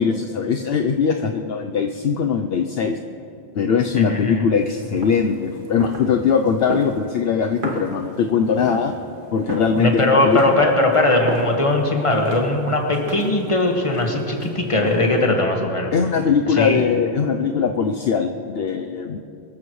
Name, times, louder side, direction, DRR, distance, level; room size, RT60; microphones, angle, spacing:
voice 1, 0.0-3.0 3.5-8.9 9.3-10.4 15.9-19.2, left 6 dB, 65° left, 5 dB, 0.8 m, -21 dB
voice 2, 3.9-4.4 9.8-15.9 16.6-16.8, left 2 dB, 30° left, 1 dB, 1.7 m, -19 dB
sound 1, 4.6-15.3, right 1 dB, 50° right, 1.7 m, -35 dB
24.0 x 14.0 x 3.2 m, 2.7 s
omnidirectional pair, 1.1 m